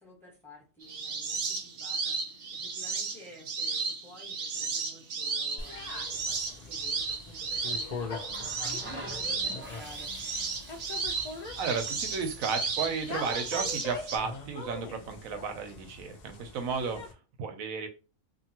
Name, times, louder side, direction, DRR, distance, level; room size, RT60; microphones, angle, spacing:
voice 1, 0.0-2.2 2.5-10.1, equal, ahead, -4 dB, 1.3 m, -51 dB
sound 1, 0.8-14.2, right 4 dB, 55° right, 0.7 m, -34 dB
sound 2, 5.6-17.1, left 4 dB, 70° left, 0.3 m, -42 dB
Water tap faucet, 8.3-13.8 15.0-15.2, equal, 15° right, 0.4 m, -48 dB
voice 2, 11.6-17.9, right 5 dB, 80° right, 6 dB, 1.1 m, -34 dB
2.7 x 2.6 x 2.8 m, 0.32 s
omnidirectional pair, 1.4 m